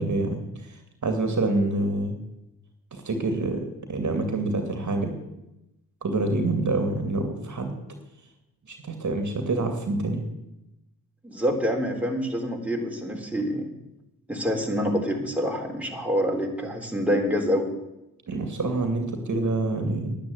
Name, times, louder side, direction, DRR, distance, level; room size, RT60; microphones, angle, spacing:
voice 1, 0.0-2.2 2.9-5.1 6.0-7.8 8.7-10.2 18.3-20.2, right 2 dB, 45° right, 5 dB, 2.4 m, -27 dB
voice 2, 11.2-13.7 14.3-17.7, equal, 5° right, 0 dB, 3.6 m, -26 dB
10.0 x 10.0 x 8.0 m, 0.93 s
hypercardioid pair, 45°, 39 cm